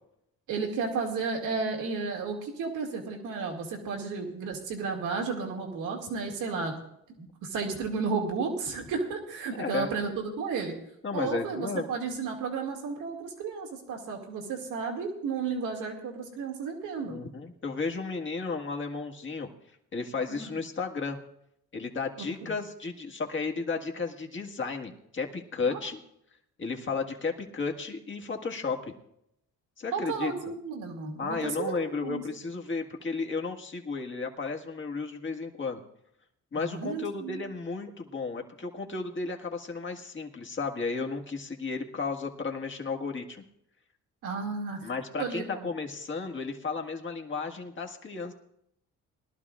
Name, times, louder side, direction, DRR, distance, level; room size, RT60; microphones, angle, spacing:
voice 1, 0.5-6.7 7.2-10.1 10.4-10.7 11.1-17.2 20.3-20.4 22.2-22.5 25.7-25.8 29.9-32.2 36.5-37.4 44.2-44.8 45.2-45.7, right 5 dB, 90° right, 1 dB, 2.3 m, -33 dB
voice 2, 9.6-9.9 11.0-11.9 17.1-19.5 19.9-21.2 21.7-26.0 26.6-28.9 29.8-30.3 31.2-35.8 36.5-43.4 44.8-48.3, left 4 dB, 40° left, 2 dB, 1.7 m, -33 dB
21.5 x 12.0 x 2.5 m, 0.76 s
cardioid pair, 90°, 30 cm